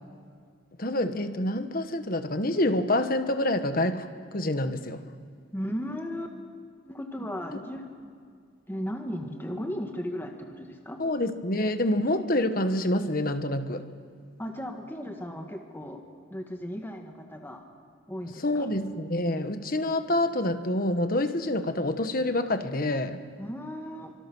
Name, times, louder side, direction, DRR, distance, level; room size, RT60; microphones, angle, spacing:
voice 1, 0.8-5.0 11.0-13.8 18.4-23.2, left 1 dB, 45° left, 9 dB, 1.3 m, -27 dB
voice 2, 5.5-6.4 6.9-8.1 8.7-11.0 14.4-16.0 16.3-17.6 18.1-18.7 23.4-24.1, equal, 10° left, 3 dB, 1.7 m, -36 dB
30.0 x 25.5 x 6.3 m, 2.2 s
head